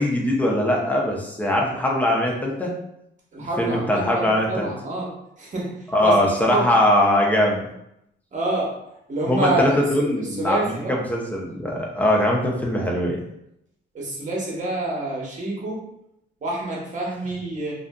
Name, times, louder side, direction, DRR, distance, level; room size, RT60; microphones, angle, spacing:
voice 1, 0.0-2.7 3.6-4.7 5.9-7.6 9.3-13.2, left 1 dB, 10° left, -2 dB, 0.6 m, -21 dB
voice 2, 3.3-6.7 8.3-8.8 9.1-11.0 13.9-15.9 16.4-17.7, right 2 dB, 40° right, -3 dB, 0.9 m, -27 dB
2.5 x 2.5 x 2.2 m, 0.79 s
cardioid pair, 90°, 20 cm